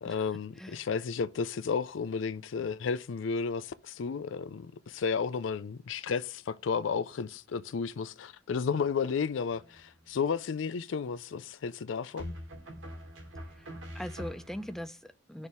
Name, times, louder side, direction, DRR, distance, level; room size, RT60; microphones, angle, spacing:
voice 1, 0.0-12.3, left 5 dB, 75° left, 0.4 m, -33 dB
voice 2, 0.6-0.9 13.6-13.7 13.9-15.5, equal, ahead, 0.4 m, -41 dB
sound 1, 9.5-10.1 12.2-14.8, equal, 90° right, 2.7 m, -44 dB
6.5 x 3.5 x 5.9 m
head